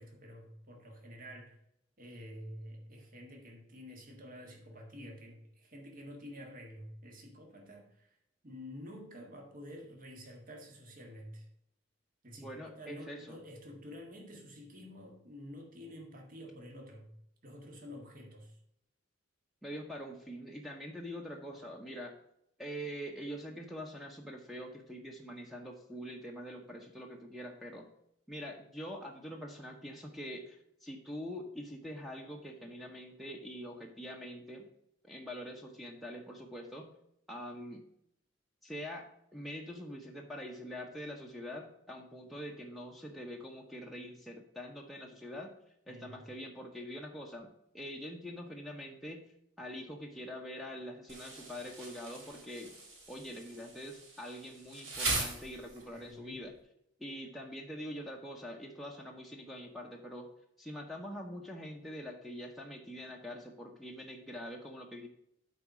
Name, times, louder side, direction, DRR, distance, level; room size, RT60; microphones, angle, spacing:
voice 1, 0.0-1.6 2.0-8.2 8.4-11.5 12.2-17.1 17.4-18.6 45.9-46.2 55.9-56.4, equal, 45° right, 1 dB, 1.8 m, -49 dB
voice 2, 12.4-13.4 19.6-22.1 22.6-27.9 28.3-34.7 35.0-36.9 37.3-37.8 38.6-45.5 45.9-49.2 49.6-52.7 53.1-56.5 57.0-60.3 60.6-65.1, equal, ahead, 1 dB, 0.8 m, -44 dB
Insect, 51.1-56.1, right 2 dB, 85° right, 3.2 m, -40 dB
8.4 x 4.2 x 6.0 m, 0.74 s
head